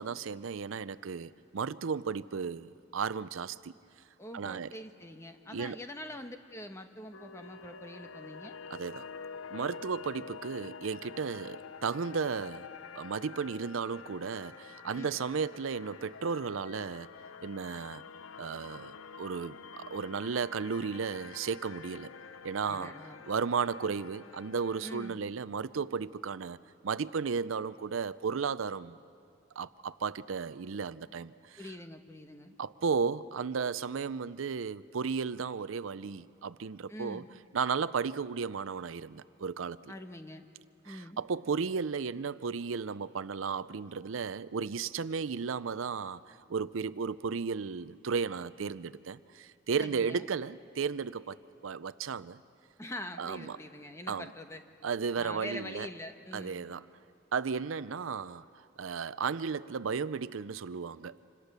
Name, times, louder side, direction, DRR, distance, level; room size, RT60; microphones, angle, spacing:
voice 1, 0.0-3.7 4.3-4.7 5.5-5.8 8.7-9.1 9.5-12.7 13.0-17.1 17.4-18.0 18.4-22.1 22.4-22.9 23.3-29.0 29.6-31.6 32.6-37.2 37.5-39.9 40.9-51.4 51.6-52.4 53.2-53.6 54.1-54.3 54.8-55.9 56.3-56.9 57.3-61.2, right 5 dB, 80° right, 16 dB, 0.5 m, -34 dB
voice 2, 4.2-8.6 14.9-15.2 22.6-23.2 24.8-25.2 31.6-32.5 36.9-37.3 39.9-40.5 40.8-41.2 49.8-50.3 52.8-54.6 55.1-56.7, left 1 dB, 15° left, 6 dB, 1.1 m, -44 dB
sound 1, 7.1-25.1, left 6 dB, 85° left, 0.6 m, -48 dB
27.0 x 25.5 x 6.7 m, 2.6 s
head